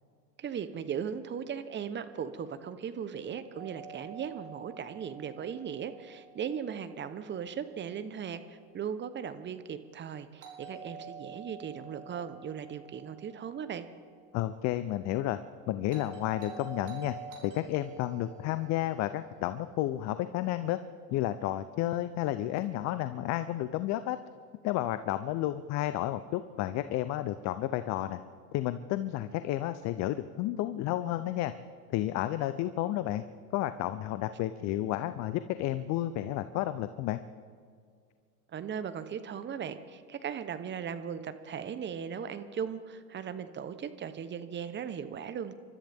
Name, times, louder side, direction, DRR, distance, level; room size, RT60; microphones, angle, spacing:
voice 1, 0.4-13.9 38.5-45.5, right 7 dB, 25° right, 11 dB, 1.0 m, -38 dB
Doorbell, 3.5-7.5 10.4-14.6 15.9-20.3, right 5 dB, 40° right, 4.4 m, -49 dB
voice 2, 14.3-15.4 15.7-17.2 17.4-20.8 21.1-24.2 24.6-28.2 28.5-31.5 31.9-33.2 33.5-37.2, left 14 dB, 35° left, 12 dB, 0.6 m, -31 dB
28.5 x 13.0 x 3.6 m, 2.1 s
hypercardioid pair, 100°, 48 cm